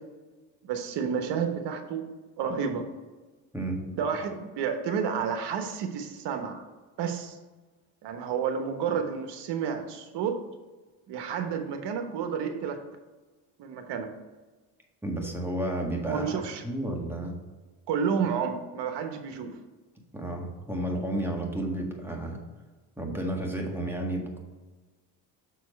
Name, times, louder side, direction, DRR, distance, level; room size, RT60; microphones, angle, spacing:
voice 1, 0.6-2.1 2.4-2.9 4.0-6.6 7.0-7.4 8.0-10.4 11.1-12.8 13.6-14.1 16.0-16.6 17.9-19.6, right 6 dB, 80° right, 6 dB, 1.2 m, -30 dB
voice 2, 15.0-16.4 16.6-17.4 20.1-22.4 23.0-24.4, right 1 dB, 5° right, 0 dB, 1.7 m, -31 dB
6.8 x 4.6 x 5.3 m, 1.3 s
cardioid pair, 90°, 41 cm